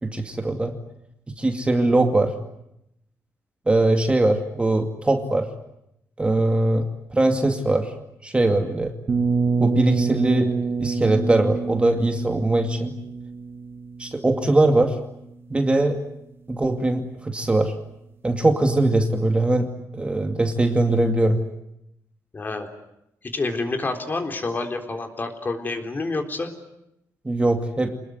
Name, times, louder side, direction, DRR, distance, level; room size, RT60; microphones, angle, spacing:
voice 1, 0.0-0.8 1.4-2.3 3.7-5.5 6.2-7.9 8.2-8.9 9.6-12.9 14.0-15.0 15.5-16.0 16.5-17.7 18.2-21.4 27.2-28.0, right 2 dB, 20° right, 5 dB, 2.4 m, -21 dB
sound 1, 9.1-14.8, right 4 dB, 40° right, 1.8 m, -26 dB
voice 2, 22.3-22.7 23.3-26.5, left 3 dB, 30° left, 5 dB, 3.9 m, -28 dB
27.0 x 20.5 x 9.6 m, 0.82 s
cardioid pair, 120°, 6 cm